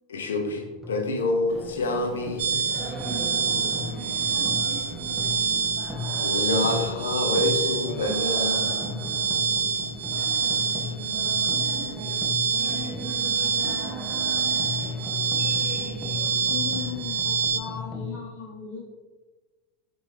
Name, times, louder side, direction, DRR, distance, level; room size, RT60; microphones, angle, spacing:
voice 1, 0.1-2.7 6.2-8.7, left 2 dB, 90° left, 3 dB, 0.6 m, -27 dB
sound 1, 0.6-18.2, left 3 dB, ahead, 0.8 m, -38 dB
Singing, 1.5-17.5, right 3 dB, 25° right, 0.5 m, -39 dB
sound 2, 2.4-17.6, right 5 dB, 80° right, 0.4 m, -26 dB
voice 2, 3.4-5.8 9.8-10.6 11.4-14.6, right 4 dB, 50° right, -3 dB, 1.3 m, -43 dB
voice 3, 16.4-18.8, left 7 dB, 55° left, -3 dB, 0.8 m, -37 dB
4.5 x 2.6 x 3.2 m, 1.2 s
hypercardioid pair, 105°, 0 cm